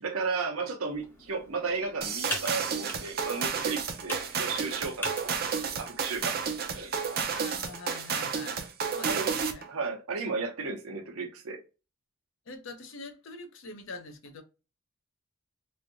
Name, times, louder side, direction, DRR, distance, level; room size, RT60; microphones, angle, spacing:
voice 1, 0.0-6.4 6.7-7.0 9.1-9.4 9.7-11.6, right 4 dB, 85° right, 0.8 m, -34 dB
Computer keyboard, 0.9-7.6, left 1 dB, 10° left, 0.6 m, -43 dB
sound 1, 2.0-9.7, right 6 dB, 45° right, 0.5 m, -31 dB
voice 2, 7.3-9.7 12.5-14.4, left 3 dB, 65° left, 0.6 m, -44 dB
3.2 x 2.7 x 2.6 m
head